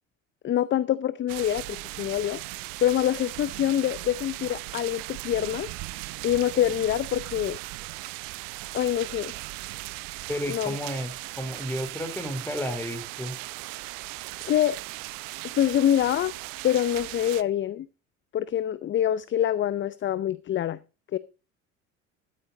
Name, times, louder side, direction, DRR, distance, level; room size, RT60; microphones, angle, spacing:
voice 1, 0.4-2.4 2.8-5.7 6.2-7.6 8.7-9.3 10.5-10.8 14.5-14.8 15.4-16.3 16.6-17.9 18.3-20.8 21.1-21.2, left 11 dB, 30° left, 0.6 m, -25 dB
sound 1, 1.3-17.4, right 21 dB, 60° right, 0.7 m, -38 dB
voice 2, 10.3-11.1 11.4-13.3, equal, 5° left, 3.7 m, -32 dB
14.0 x 8.6 x 3.9 m
hypercardioid pair, 60°, 40 cm